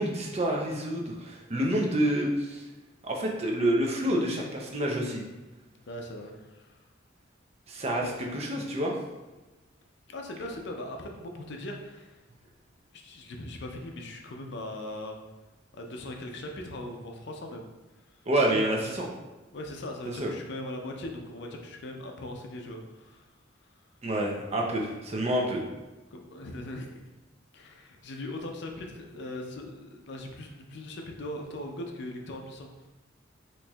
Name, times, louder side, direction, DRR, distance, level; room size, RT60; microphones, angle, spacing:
voice 1, 0.0-2.6 3.0-5.2 7.7-8.9 18.3-19.1 20.2-20.3 24.0-25.6, right 1 dB, 30° right, -1 dB, 0.5 m, -28 dB
voice 2, 5.7-6.8 8.0-8.3 10.1-12.2 12.9-15.2 15.7-17.7 18.1-18.2 18.7-19.0 19.5-23.3 23.6-23.8 26.1-27.1 27.5-32.9, left 1 dB, 60° left, 2 dB, 0.5 m, -40 dB
4.3 x 3.0 x 2.3 m, 1.1 s
head